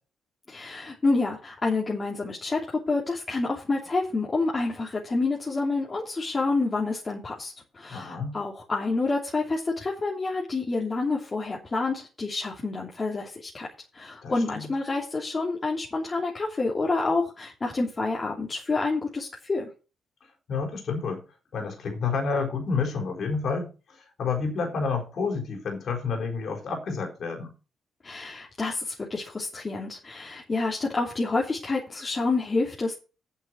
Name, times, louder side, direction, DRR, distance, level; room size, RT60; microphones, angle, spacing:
voice 1, 0.5-13.7 13.9-19.7 28.0-32.9, left 3 dB, 35° left, 3.1 m, -28 dB
voice 2, 7.9-8.3 14.2-14.7 20.5-21.2 21.5-27.5, left 5 dB, 60° left, 4.3 m, -29 dB
8.5 x 7.9 x 6.1 m
supercardioid pair, 65°, 0 cm